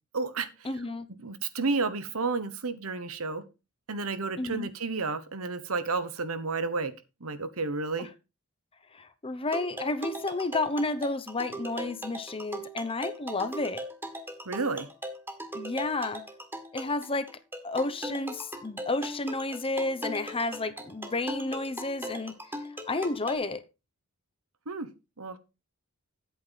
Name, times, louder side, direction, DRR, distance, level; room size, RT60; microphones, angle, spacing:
voice 1, 0.1-0.7 1.2-3.4 3.9-6.9 7.2-8.1 14.5-14.9 24.7-24.9 25.2-25.4, right 4 dB, 70° right, 12 dB, 1.2 m, -31 dB
voice 2, 0.6-1.1 4.4-4.7 8.0-8.1 8.9-13.8 15.5-16.2 16.7-17.3 17.6-22.3 22.9-23.6, left 2 dB, 25° left, 11 dB, 0.9 m, -31 dB
sound 1, 9.5-23.4, right 1 dB, 10° right, 1.7 m, -39 dB
9.4 x 8.6 x 4.0 m, 0.27 s
head